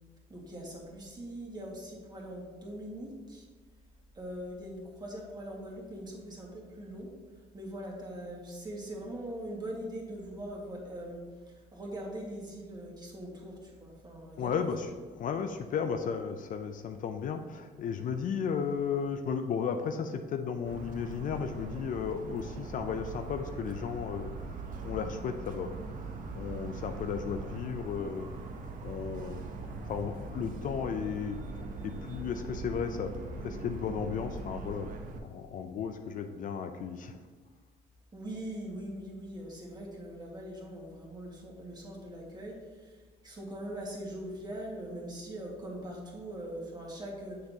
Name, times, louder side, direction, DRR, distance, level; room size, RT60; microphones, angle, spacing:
voice 1, 0.3-3.5 4.1-7.1 7.5-11.2 11.7-14.5 38.1-43.0 43.2-47.5, right 1 dB, 25° right, -2 dB, 2.0 m, -41 dB
voice 2, 14.4-14.9 15.2-24.3 24.8-25.7 26.3-28.3 28.8-29.5 29.9-31.4 31.8-33.1 33.4-34.9 35.2-37.2, left 6 dB, 50° left, 7 dB, 0.5 m, -34 dB
Motor vehicle (road) / Siren, 20.7-35.2, right 3 dB, 50° right, 0.9 m, -41 dB
7.6 x 6.6 x 2.9 m, 1.4 s
cardioid pair, 110°, 17 cm